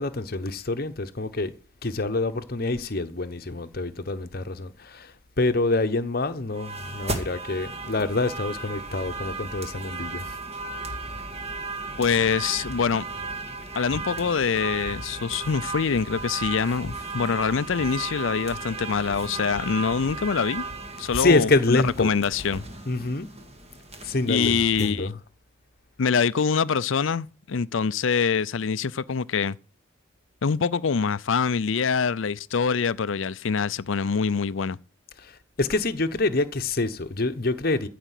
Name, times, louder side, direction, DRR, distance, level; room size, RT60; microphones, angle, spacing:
voice 1, 0.0-1.5 1.8-5.1 5.4-10.3 21.1-22.1 22.9-23.3 24.0-25.1 35.2-35.3 35.6-37.9, left 2 dB, 45° left, 1.0 m, -26 dB
sound 1, 6.5-24.9, right 3 dB, 30° right, 2.0 m, -35 dB
voice 2, 12.0-13.1 13.7-20.6 21.0-22.6 24.3-25.1 26.0-29.6 30.4-34.8, left 6 dB, 70° left, 0.5 m, -25 dB
15.0 x 5.1 x 8.3 m
head